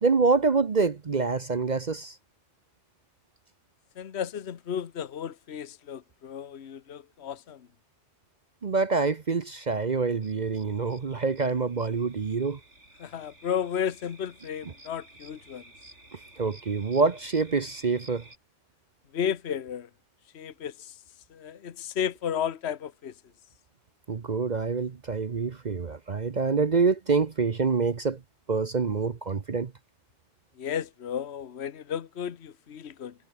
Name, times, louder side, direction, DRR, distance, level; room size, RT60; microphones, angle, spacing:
voice 1, 0.0-2.1 8.6-12.6 16.4-18.2 24.1-28.2 28.5-29.7, right 4 dB, 40° right, 0.9 m, -26 dB
voice 2, 4.0-7.7 13.0-15.6 19.1-19.9 20.3-20.9 21.3-23.1 30.6-33.1, left 8 dB, 60° left, 1.3 m, -33 dB
sound 1, 10.2-18.4, right 2 dB, 70° right, 6.8 m, -53 dB
omnidirectional pair, 1.3 m